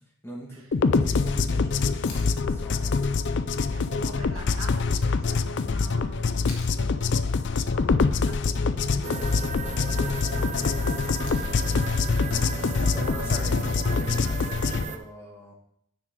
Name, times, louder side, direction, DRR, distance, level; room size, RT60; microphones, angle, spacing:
voice 1, 0.2-3.0 12.8-15.5, equal, 10° left, -3 dB, 2.3 m, -41 dB
sound 1, 0.7-14.8, left 4 dB, 55° left, 0.5 m, -25 dB
sound 2, 2.1-2.4 4.6-4.7 6.5-6.8 8.8-9.2 11.2-11.7 13.8-13.9, left 3 dB, 75° left, 2.1 m, -44 dB
voice 2, 3.6-11.0 12.3-13.3, right 2 dB, 70° right, 2 dB, 1.7 m, -44 dB
sound 3, 9.0-15.0, right 4 dB, 35° right, 0.6 m, -36 dB
9.5 x 7.5 x 3.9 m, 0.68 s
head